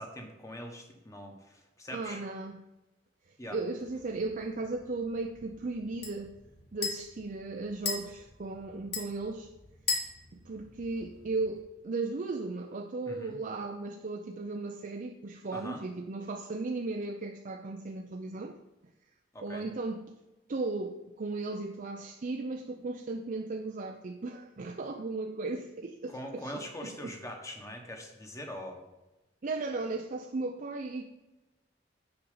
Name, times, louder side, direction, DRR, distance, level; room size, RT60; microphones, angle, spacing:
voice 1, 0.0-2.2 3.4-3.6 13.1-13.4 15.5-15.8 19.3-19.7 26.1-28.8, equal, 15° left, 1.3 m, -42 dB
voice 2, 1.9-2.6 3.5-6.3 6.7-9.5 10.4-18.6 19.4-20.1 20.5-27.1 29.4-31.1, right 3 dB, 45° right, 0.5 m, -36 dB
sound 1, 3.8-11.6, left 5 dB, 60° left, 2.0 m, -40 dB
6.9 x 5.2 x 6.9 m
head